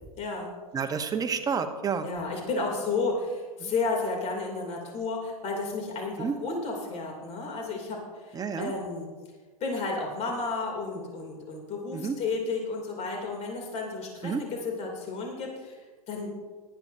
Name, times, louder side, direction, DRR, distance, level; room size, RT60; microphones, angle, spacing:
voice 1, 0.2-0.5 2.0-8.0 8.2-9.1 9.6-15.8 16.1-16.3, left 3 dB, 35° left, 0 dB, 2.9 m, -32 dB
voice 2, 0.7-2.1 3.6-3.7 6.2-6.4 8.3-8.7 11.9-12.2 14.2-14.4, right 6 dB, 20° right, 7 dB, 1.0 m, -29 dB
18.0 x 11.5 x 2.7 m, 1.4 s
hypercardioid pair, 105°, 19 cm